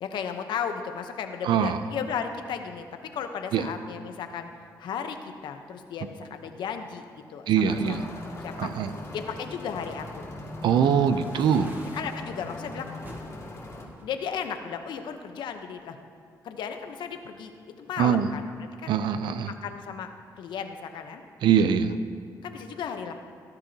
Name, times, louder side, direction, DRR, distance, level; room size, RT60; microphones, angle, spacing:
voice 1, 0.0-2.9 3.1-4.5 4.8-5.2 5.4-8.7 9.1-10.3 10.9-11.7 11.9-12.9 14.0-16.0 16.4-18.5 18.8-19.0 19.5-20.1 20.4-21.2 22.4-23.1, left 7 dB, 80° left, 7 dB, 0.9 m, -35 dB
voice 2, 1.4-1.8 3.5-3.6 7.5-8.0 8.6-8.9 10.6-11.7 18.0-18.3 18.9-19.5 21.4-21.9, right 8 dB, 80° right, 11 dB, 0.6 m, -22 dB
sound 1, 7.7-13.9, left 1 dB, 35° left, 2.5 m, -40 dB
sound 2, 11.1-12.2 13.0-13.3 13.9-15.0, right 1 dB, 25° right, 2.2 m, -46 dB
18.0 x 11.0 x 2.9 m, 2.3 s
cardioid pair, 80°, 8 cm